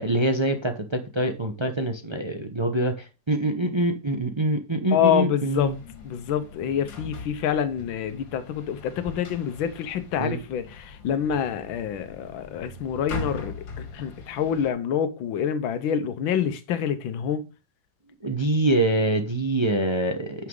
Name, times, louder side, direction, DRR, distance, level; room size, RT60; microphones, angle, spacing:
voice 1, 0.0-5.8 10.2-10.4 18.2-20.5, right 1 dB, 35° right, 0.4 m, -25 dB
voice 2, 4.9-5.7 6.0-17.4, left 8 dB, 90° left, 1.6 m, -27 dB
sound 1, 5.6-14.7, left 3 dB, 75° left, 2.4 m, -41 dB
9.4 x 5.9 x 3.8 m
omnidirectional pair, 2.1 m